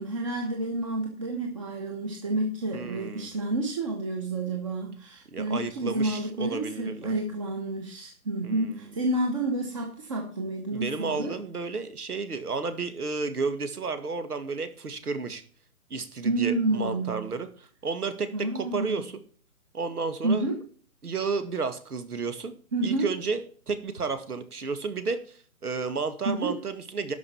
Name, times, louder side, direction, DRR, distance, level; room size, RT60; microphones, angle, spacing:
voice 1, 0.0-11.3 16.2-17.2 18.3-19.0 20.2-20.6 22.7-23.1 26.2-26.6, right 2 dB, 20° right, 2 dB, 1.1 m, -29 dB
voice 2, 2.7-3.3 5.3-7.1 8.4-8.8 10.7-15.4 15.9-19.1 19.7-20.5 21.0-22.5 22.8-27.1, right 4 dB, 85° right, 11 dB, 2.2 m, -32 dB
12.5 x 5.5 x 7.1 m, 0.44 s
hypercardioid pair, 165°, 44 cm